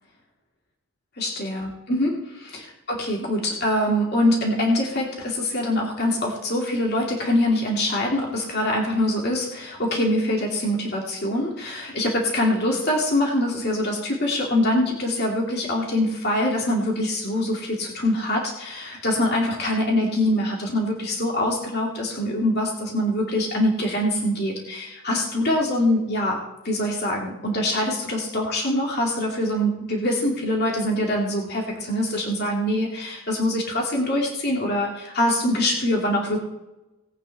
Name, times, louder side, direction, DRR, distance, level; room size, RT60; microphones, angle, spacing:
voice 1, 1.2-2.1 2.5-2.6 2.9-26.4 26.6-36.4, left 1 dB, 50° left, -1 dB, 2.6 m, -24 dB
19.0 x 9.1 x 3.5 m, 0.98 s
head